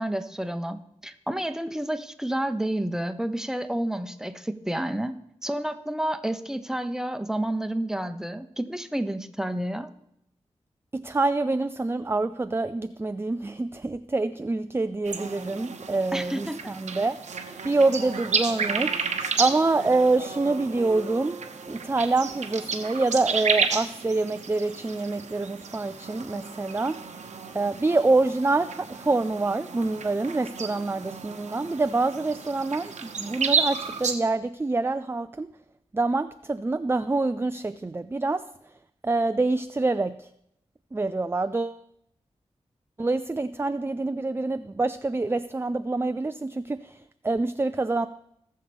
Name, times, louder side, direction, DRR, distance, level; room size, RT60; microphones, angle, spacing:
voice 1, 0.0-9.9 16.1-16.7, right 1 dB, 5° right, 8 dB, 0.9 m, -30 dB
voice 2, 10.9-21.4 21.7-27.3 27.5-35.5 35.9-38.4 39.0-40.3 40.9-41.8 43.0-48.1, right 3 dB, 20° right, 11 dB, 0.4 m, -26 dB
sound 1, 15.0-34.1, right 5 dB, 90° right, 1.0 m, -32 dB
18.5 x 6.6 x 3.5 m, 0.78 s
cardioid pair, 45°, 12 cm